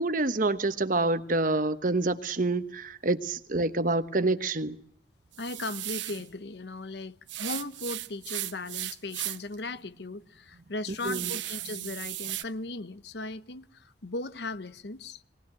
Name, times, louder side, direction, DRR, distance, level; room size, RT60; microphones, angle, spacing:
voice 1, 0.0-4.8 11.0-11.3, right 2 dB, 45° right, 1.1 m, -27 dB
sound 1, 5.3-6.3 7.3-9.5 10.0-10.1 10.5-12.4, right 14 dB, 85° right, 0.9 m, -36 dB
voice 2, 5.4-15.2, left 2 dB, 65° left, 0.9 m, -37 dB
22.0 x 18.5 x 8.9 m
head